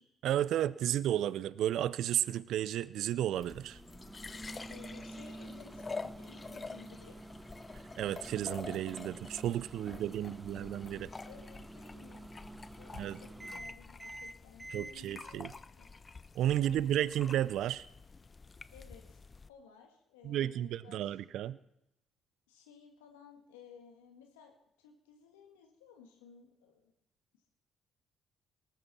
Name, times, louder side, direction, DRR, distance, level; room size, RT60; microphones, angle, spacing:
voice 1, 0.2-3.8 8.0-11.1 12.9-13.2 14.7-15.5 16.3-17.9 20.2-21.6, right 11 dB, 70° right, 19 dB, 0.4 m, -33 dB
sound 1, 3.3-19.5, left 4 dB, 35° left, 0.6 m, -48 dB
Microwave oven, 3.4-14.9, right 2 dB, 15° right, 0.7 m, -49 dB
voice 2, 4.7-7.2 9.8-10.3 10.7-12.3 12.8-15.5 15.8-16.0 16.5-17.1 18.7-19.2 19.5-21.5 22.5-26.9, left 7 dB, 90° left, 3 dB, 1.8 m, -57 dB
18.5 x 13.5 x 4.3 m, 0.82 s
hypercardioid pair, 50°, 0 cm